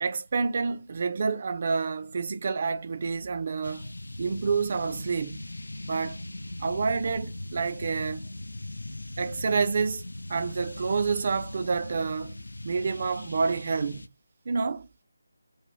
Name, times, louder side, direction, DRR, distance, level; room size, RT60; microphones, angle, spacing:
voice 1, 0.0-3.9 4.2-5.4 5.9-6.2 6.6-8.2 9.2-10.0 10.3-12.4 12.6-14.1 14.5-14.9, right 5 dB, 40° right, 0.4 m, -28 dB
sound 1, 3.6-14.1, left 1 dB, 75° left, 0.3 m, -39 dB
2.6 x 2.2 x 3.1 m
figure-of-eight pair, 155°, 0 cm